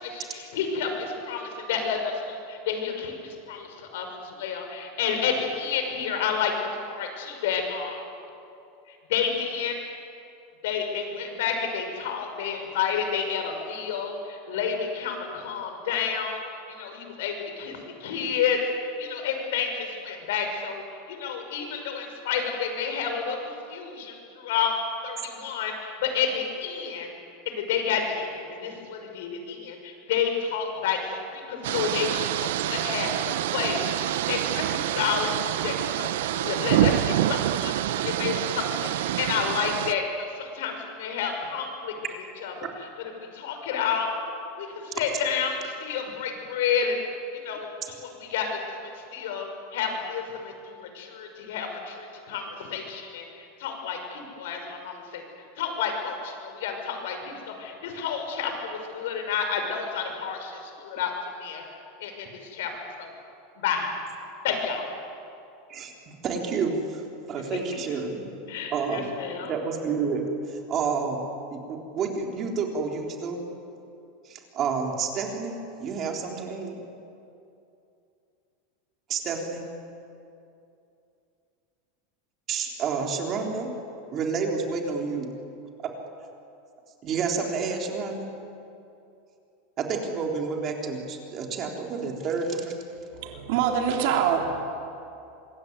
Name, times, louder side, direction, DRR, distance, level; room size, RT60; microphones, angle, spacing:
voice 1, 0.0-8.0 9.1-9.8 10.6-16.4 16.8-20.8 21.1-24.7 25.0-27.1 27.5-35.3 35.6-41.9 42.4-42.5 43.2-44.1 44.6-47.0 47.4-47.7 48.0-53.2 53.6-55.2 55.6-61.1 61.4-61.6 62.0-62.7 63.0-63.1 63.6-63.9 64.4-64.9 68.5-69.5, left 6 dB, 75° left, 4 dB, 6.1 m, -30 dB
sound 1, 31.6-39.9, right 13 dB, 75° right, 0.8 m, -27 dB
voice 2, 65.7-68.3 68.7-69.1 69.4-71.2 71.5-73.4 74.2-76.8 79.1-79.6 82.5-83.7 84.1-85.3 85.8-85.9 87.0-88.3 89.8-92.7, right 5 dB, 30° right, 1 dB, 3.7 m, -29 dB
voice 3, 93.2-94.6, right 8 dB, 60° right, 2 dB, 3.5 m, -24 dB
26.0 x 22.0 x 9.6 m, 2.7 s
supercardioid pair, 160°, 0 cm